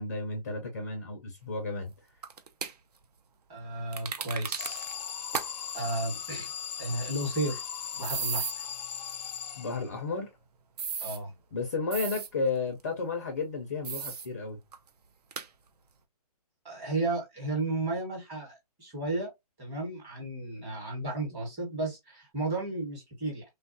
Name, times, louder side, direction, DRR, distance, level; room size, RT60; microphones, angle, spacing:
voice 1, 0.0-1.9 9.6-10.3 11.5-14.6, left 4 dB, 25° left, 0.4 m, -33 dB
sound 1, 2.2-2.7 3.9-4.9 5.3-5.5 5.8-5.9 8.0-8.5 10.8-11.2 11.9-12.3 13.8-14.3 14.7-14.8 15.3-15.5, right 6 dB, 70° right, 0.6 m, -34 dB
voice 2, 3.5-4.8 5.7-6.5 6.8-7.6 8.0-8.6 11.0-11.3 16.6-19.3 19.6-23.4, right 2 dB, 15° right, 1.1 m, -33 dB
Alarm, 4.6-10.1, left 8 dB, 90° left, 0.4 m, -38 dB
3.2 x 2.2 x 2.5 m
hypercardioid pair, 170°, 20 cm